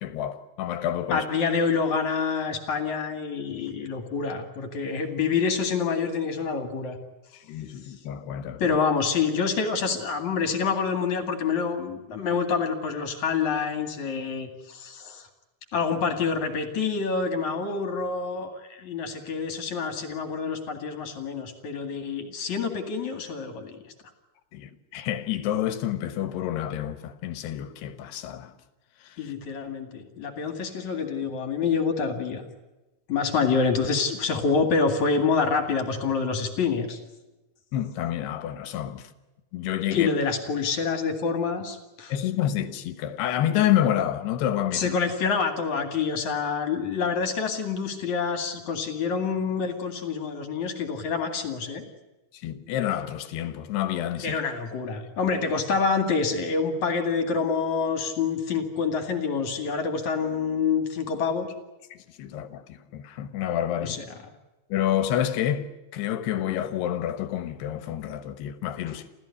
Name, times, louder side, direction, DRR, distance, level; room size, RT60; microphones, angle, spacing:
voice 1, 0.0-1.3 7.5-8.8 24.5-28.5 29.0-29.3 37.7-39.1 39.5-40.1 42.1-45.0 52.4-54.4 61.9-64.0 64.7-69.1, left 11 dB, 70° left, 3.0 m, -28 dB
voice 2, 1.1-7.0 8.6-15.3 15.7-23.8 29.2-32.4 33.1-37.0 39.9-42.1 44.7-51.8 54.2-61.5 63.8-64.2 68.9-69.0, left 5 dB, 50° left, 2.8 m, -27 dB
29.0 x 15.0 x 9.8 m
omnidirectional pair, 5.3 m